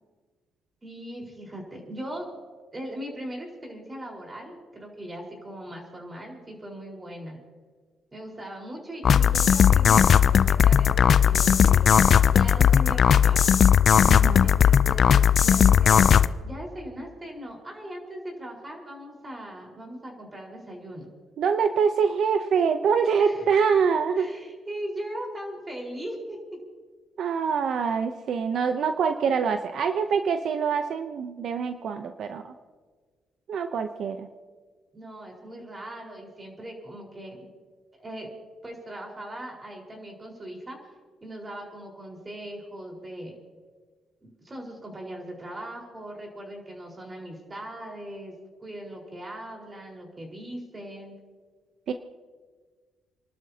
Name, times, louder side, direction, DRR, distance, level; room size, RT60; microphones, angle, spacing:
voice 1, 0.8-2.3 2.7-7.4 8.1-11.9 12.2-13.4 14.4-15.1 15.4-16.1 16.4-21.1 23.2-23.5 24.2-26.4 29.2-29.3 34.9-37.4 38.0-38.3 38.6-40.9 41.2-43.3 44.2-48.3 48.6-51.1, right 1 dB, 25° right, 0 dB, 4.5 m, -39 dB
sound 1, 9.0-16.3, left 8 dB, 55° left, 0.4 m, -18 dB
voice 2, 14.1-14.5 21.4-24.3 27.2-32.5 33.5-34.3 51.9-52.0, right 6 dB, 65° right, 7 dB, 0.7 m, -25 dB
29.5 x 12.0 x 2.9 m, 1.5 s
cardioid pair, 90°, 0 cm